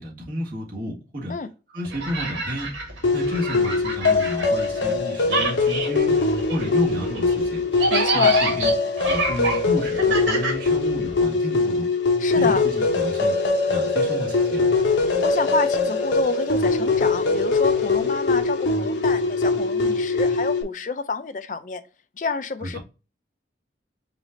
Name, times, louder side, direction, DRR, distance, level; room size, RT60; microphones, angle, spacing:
voice 1, 0.0-1.3 1.7-2.7 3.1-6.1 6.5-7.6 8.1-8.7 9.0-11.8 12.3-13.3 13.7-14.7 22.6-22.8, equal, 50° right, 1.6 m, -31 dB
sound 1, 1.8-5.0 5.2-11.2, right 2 dB, 85° right, 1.5 m, -27 dB
sound 2, 3.0-20.6, left 3 dB, 85° left, 0.9 m, -22 dB
voice 2, 7.9-8.4 12.2-12.6 15.2-21.8 22.2-22.8, left 3 dB, 45° left, 0.4 m, -28 dB
5.1 x 2.5 x 3.8 m
head